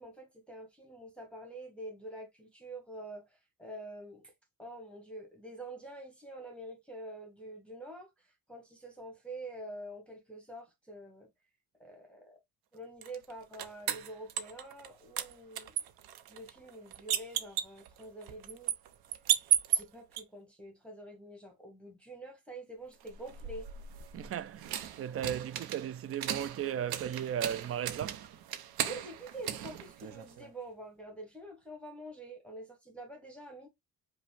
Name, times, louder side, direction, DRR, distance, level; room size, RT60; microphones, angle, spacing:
voice 1, 0.0-3.3 3.6-4.3 4.6-11.3 11.8-12.4 12.7-15.7 16.3-18.8 19.7-23.7 28.8-33.7, right 1 dB, 5° left, 1.1 m, -46 dB
sound 1, 13.0-14.9 15.2-20.2 23.0-30.5, right 10 dB, 80° right, 0.7 m, -36 dB
voice 2, 24.1-28.3, right 9 dB, 40° right, 0.4 m, -36 dB
5.0 x 2.2 x 3.2 m
cardioid pair, 105°, 37 cm